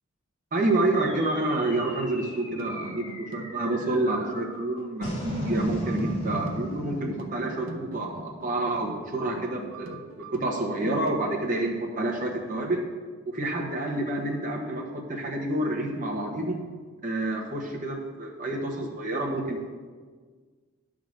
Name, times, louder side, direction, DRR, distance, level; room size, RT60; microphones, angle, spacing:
voice 1, 0.5-12.8 13.3-16.6 17.0-19.7, right 2 dB, 40° right, -1 dB, 1.1 m, -28 dB
sound 1, 1.0-9.6, equal, 35° left, 2.6 m, -37 dB
sound 2, 2.2-11.1, right 3 dB, 75° right, 0.7 m, -45 dB
9.9 x 3.8 x 6.4 m, 1.5 s
head